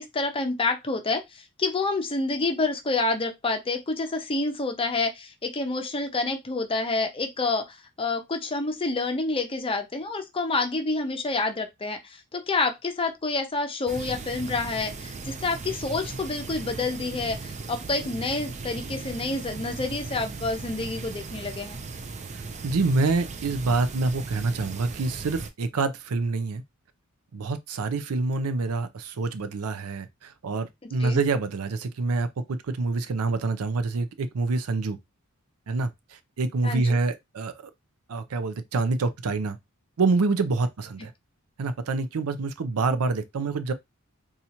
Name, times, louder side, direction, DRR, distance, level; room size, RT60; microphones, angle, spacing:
voice 1, 0.0-21.8 30.8-31.2 36.6-37.0, left 3 dB, 25° left, 0.6 m, -28 dB
sound 1, 13.9-25.5, right 4 dB, 30° right, 0.4 m, -37 dB
voice 2, 22.6-26.6 27.3-35.0 35.7-37.7 38.1-39.6 40.0-41.1 41.6-43.7, right 3 dB, 85° right, 0.5 m, -26 dB
4.2 x 2.4 x 2.8 m
head